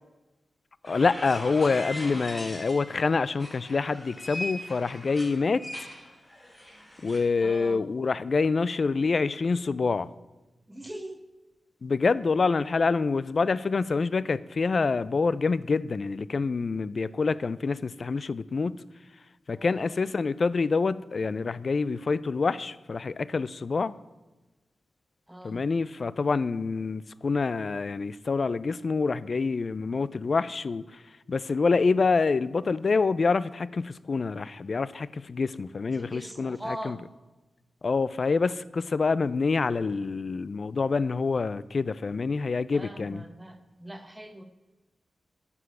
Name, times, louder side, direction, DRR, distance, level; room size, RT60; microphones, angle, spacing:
sound 1, 0.8-2.9 3.3-7.2, left 1 dB, 10° left, 3.6 m, -40 dB
voice 1, 0.9-5.6 7.0-10.1 11.8-18.8 19.5-23.9 25.4-31.0 31.3-37.0 37.8-43.2, left 4 dB, 50° left, 0.4 m, -26 dB
voice 2, 7.4-7.9 10.7-11.2 19.6-19.9 25.3-25.6 36.0-37.0 42.7-44.4, right 1 dB, 10° right, 0.9 m, -41 dB
9.9 x 6.0 x 7.9 m
wide cardioid pair, 90°, 0 cm